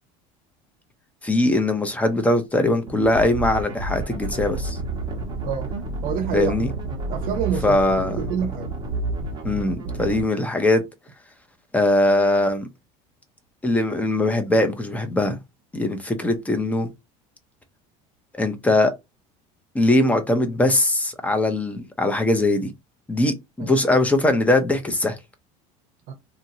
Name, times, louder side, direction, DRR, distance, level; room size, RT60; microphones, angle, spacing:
voice 1, 1.2-4.8 6.3-6.7 7.6-8.2 9.4-10.8 11.7-12.7 13.6-15.4 15.7-16.9 18.3-18.9 19.7-22.7 23.1-25.2, left 1 dB, 10° left, 0.7 m, -21 dB
sound 1, 2.9-10.2, right 2 dB, 25° right, 1.2 m, -30 dB
voice 2, 6.0-6.7 7.1-8.7 23.6-23.7 26.1-26.2, right 7 dB, 65° right, 0.7 m, -27 dB
2.8 x 2.7 x 2.7 m
supercardioid pair, 120°, 16 cm